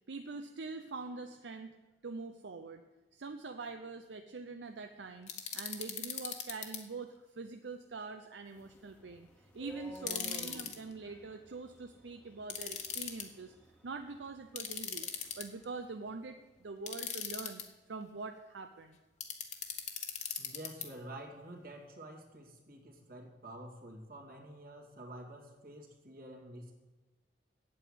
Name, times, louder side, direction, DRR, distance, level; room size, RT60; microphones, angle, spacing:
voice 1, 0.1-1.7 2.0-2.8 3.1-13.5 13.8-17.6 17.9-19.0, right 3 dB, 75° right, 6 dB, 0.6 m, -44 dB
sound 1, 5.3-6.8 9.9-10.8 12.5-13.2 14.6-15.6 16.9-17.6 19.2-20.9, left 8 dB, 40° left, 1.3 m, -39 dB
sound 2, 8.5-16.5, equal, 5° left, 1.3 m, -55 dB
voice 2, 20.3-26.7, right 1 dB, 55° right, 0 dB, 2.4 m, -49 dB
8.7 x 8.2 x 8.9 m, 1.2 s
head